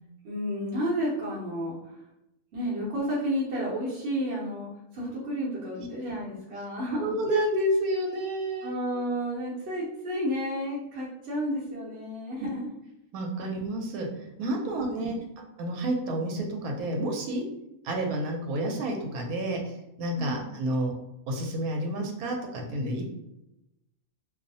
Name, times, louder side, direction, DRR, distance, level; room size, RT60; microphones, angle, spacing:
voice 1, 0.2-1.8 2.5-7.1 8.6-12.7 14.7-15.2 20.2-20.4, equal, 55° right, -7 dB, 0.9 m, -31 dB
voice 2, 7.0-8.7 13.1-15.1 15.6-17.4 17.8-20.9 21.3-23.2, right 1 dB, 80° right, 1 dB, 1.1 m, -30 dB
2.6 x 2.0 x 2.6 m, 0.87 s
omnidirectional pair, 1.5 m